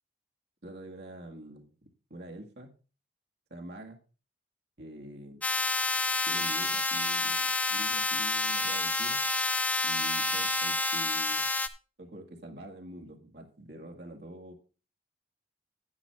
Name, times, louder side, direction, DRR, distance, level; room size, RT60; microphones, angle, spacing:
voice 1, 0.6-2.7 3.5-4.0 4.8-5.5 6.3-9.3 9.8-11.5 12.0-14.5, right 1 dB, 65° right, 1 dB, 2.0 m, -46 dB
sound 1, 5.4-11.7, left 2 dB, 10° left, 0.4 m, -29 dB
10.0 x 9.9 x 3.5 m, 0.34 s
head